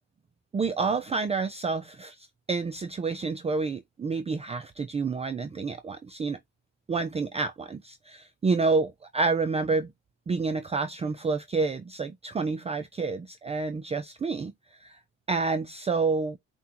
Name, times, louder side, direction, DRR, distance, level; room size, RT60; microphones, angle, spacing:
voice 1, 0.5-6.4 6.9-9.9 10.3-14.5 14.8-15.0 15.3-16.4, right 4 dB, 20° right, 0.4 m, -29 dB
5.7 x 2.3 x 2.9 m
cardioid pair, 90°, 30 cm